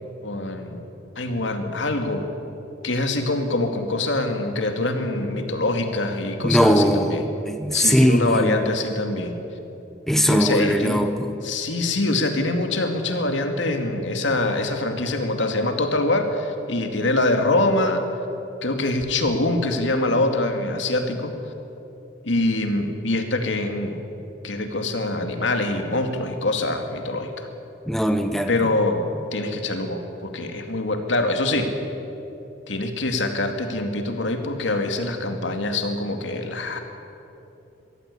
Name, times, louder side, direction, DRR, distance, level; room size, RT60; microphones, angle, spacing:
voice 1, 0.2-0.8 1.2-2.2 2.8-7.2 7.7-9.3 10.3-11.0 11.4-18.0 18.6-21.3 22.2-24.0 24.4-27.5 28.5-31.7 32.7-36.8, left 2 dB, 85° left, 5 dB, 2.3 m, -24 dB
voice 2, 6.4-8.7 10.1-11.3 27.9-28.5, equal, ahead, 7 dB, 0.9 m, -20 dB
23.5 x 15.0 x 8.5 m, 3.0 s
head